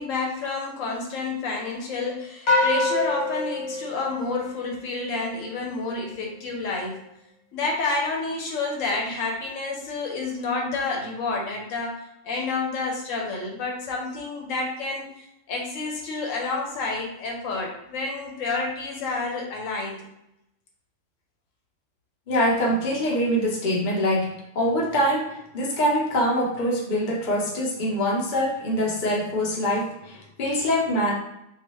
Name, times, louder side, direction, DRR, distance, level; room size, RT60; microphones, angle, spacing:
voice 1, 0.0-7.0 7.5-20.1, left 3 dB, 80° left, 0 dB, 1.0 m, -29 dB
sound 1, 2.5-5.0, left 2 dB, 65° left, 1.2 m, -25 dB
voice 2, 22.3-31.1, equal, 45° left, -3 dB, 0.8 m, -24 dB
2.8 x 2.4 x 3.0 m, 0.84 s
omnidirectional pair, 1.3 m